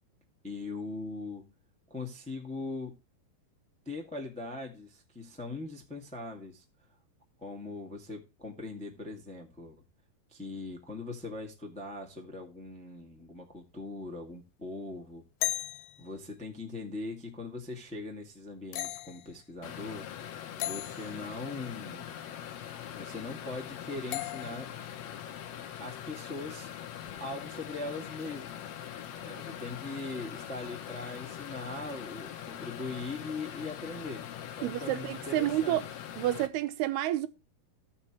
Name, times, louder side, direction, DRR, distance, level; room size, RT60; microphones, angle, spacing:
voice 1, 0.4-1.5 1.9-3.0 3.8-6.9 7.4-9.8 10.3-15.2 16.0-22.1 22.9-24.7 25.8-26.7 27.2-28.7 29.2-34.3 34.6-35.8, left 3 dB, 5° left, 0.9 m, -41 dB
sound 1, 15.4-16.1 18.7-19.3 20.6-21.1 24.1-24.8, left 13 dB, 90° left, 2.6 m, -35 dB
sound 2, 19.6-36.5, left 10 dB, 70° left, 1.6 m, -42 dB
voice 2, 34.6-35.8 36.2-37.3, right 14 dB, 85° right, 2.9 m, -29 dB
16.0 x 5.9 x 3.0 m
omnidirectional pair, 4.4 m